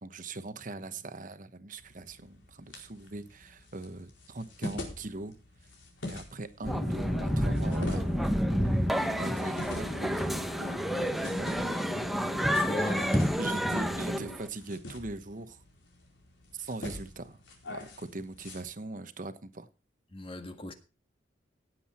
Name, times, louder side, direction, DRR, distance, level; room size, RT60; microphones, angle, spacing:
voice 1, 0.0-5.3 6.0-10.8 11.4-12.1 13.4-15.6 16.5-17.4 17.7-19.7, right 2 dB, 45° right, 1.2 m, -41 dB
sound 1, 1.8-18.6, left 2 dB, 85° left, 4.5 m, -46 dB
sound 2, 6.6-14.4, left 2 dB, 65° left, 2.2 m, -43 dB
sound 3, 6.6-14.5, equal, ahead, 0.8 m, -29 dB
voice 2, 12.5-13.2 20.1-20.7, left 2 dB, 30° left, 1.7 m, -37 dB
17.5 x 7.9 x 4.4 m
head